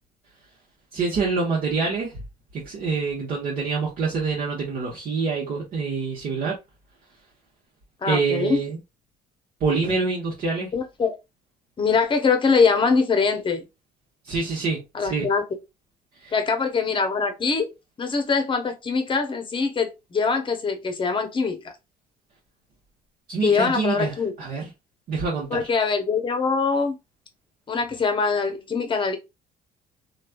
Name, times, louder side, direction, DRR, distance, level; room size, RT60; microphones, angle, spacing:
voice 1, 0.9-2.2 2.5-6.6 8.0-8.8 9.6-10.7 14.2-15.3 16.2-16.3 23.3-24.7 25.1-25.7, right 4 dB, 55° right, 1.1 m, -26 dB
voice 2, 8.0-8.6 10.7-11.2 11.8-13.6 14.9-15.4 16.3-17.7 18.0-21.6 23.4-24.3 25.5-27.0 27.7-29.2, left 5 dB, 30° left, 0.8 m, -23 dB
3.1 x 2.4 x 2.3 m
cardioid pair, 110°, 17 cm